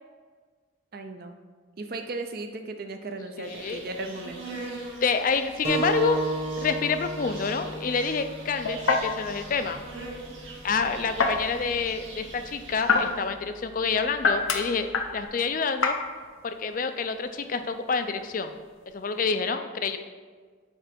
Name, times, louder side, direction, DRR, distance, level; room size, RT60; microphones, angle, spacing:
voice 1, 0.9-1.3 1.8-4.6, right 2 dB, 50° right, 6 dB, 0.5 m, -36 dB
voice 2, 3.4-3.8 5.0-6.2 6.6-9.8 10.6-16.0 16.4-18.5 18.9-20.0, left 5 dB, 45° left, 9 dB, 0.4 m, -28 dB
Insect, 3.4-13.3, right 2 dB, 75° right, 1.8 m, -43 dB
sound 1, 5.6-10.8, right 2 dB, 30° right, 1.2 m, -34 dB
sound 2, 6.3-19.3, left 4 dB, 90° left, 0.7 m, -31 dB
8.9 x 3.3 x 5.2 m, 1.5 s
head